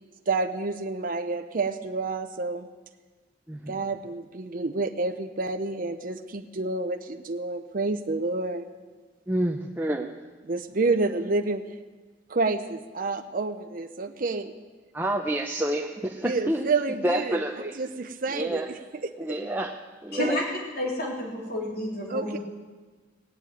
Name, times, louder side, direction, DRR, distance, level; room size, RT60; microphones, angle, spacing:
voice 1, 0.3-2.7 3.7-8.7 10.4-11.6 12.3-14.5 16.2-19.4 20.2-20.3 22.1-22.4, right 3 dB, 45° right, 6 dB, 0.7 m, -29 dB
voice 2, 9.3-10.1 14.9-16.6 17.0-17.8 18.3-18.7 19.2-19.7 20.0-20.4, right 1 dB, 10° right, 2 dB, 0.6 m, -28 dB
voice 3, 20.1-20.4 20.7-22.4, left 1 dB, 55° left, -3 dB, 3.8 m, -30 dB
17.5 x 7.5 x 9.2 m, 1.4 s
head